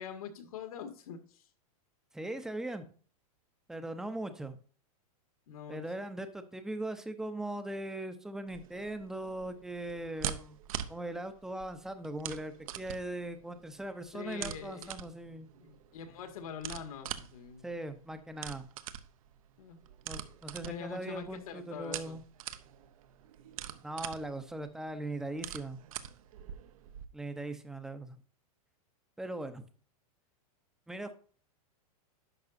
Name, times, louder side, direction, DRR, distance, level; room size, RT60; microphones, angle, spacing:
voice 1, 0.0-1.5 5.5-5.8 14.1-15.0 15.6-17.7 19.6-19.8 20.6-22.2, left 7 dB, 75° left, 6 dB, 1.8 m, -44 dB
voice 2, 2.1-2.9 3.7-4.6 5.7-10.6 10.9-15.5 17.6-18.7 20.1-22.2 23.8-25.8 27.1-28.2 29.2-29.7 30.9-31.1, right 1 dB, 5° right, 9 dB, 0.6 m, -39 dB
sound 1, 8.5-27.0, right 10 dB, 65° right, 0.8 m, -44 dB
11.0 x 6.6 x 2.6 m, 0.43 s
supercardioid pair, 155°, 19 cm